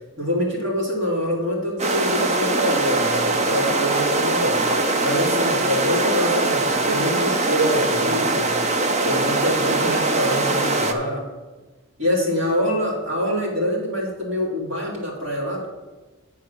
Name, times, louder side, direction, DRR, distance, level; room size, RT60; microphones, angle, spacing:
voice 1, 0.2-4.6 5.0-8.5 9.0-11.2 12.0-15.7, equal, 60° right, -3 dB, 3.1 m, -25 dB
sound 1, 1.8-10.9, right 2 dB, 35° right, 0.7 m, -22 dB
10.0 x 4.7 x 6.4 m, 1.2 s
head